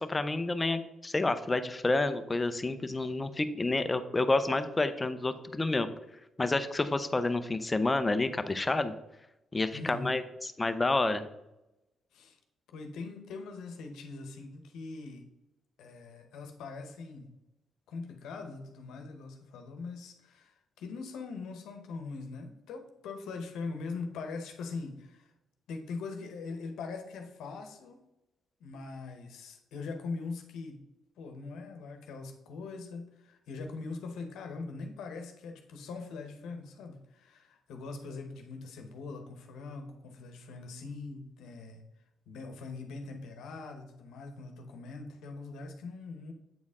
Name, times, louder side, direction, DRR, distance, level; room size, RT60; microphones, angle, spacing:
voice 1, 0.0-5.9 6.4-8.9 9.5-11.3, left 2 dB, 20° left, 10 dB, 0.6 m, -29 dB
voice 2, 9.7-10.2 12.1-12.4 12.7-15.2 15.8-17.3 17.9-25.3 25.7-28.0 28.6-30.8 31.2-41.8 42.3-46.3, left 4 dB, 85° left, 5 dB, 0.9 m, -42 dB
8.4 x 4.3 x 3.6 m, 0.94 s
cardioid pair, 90°, 0 cm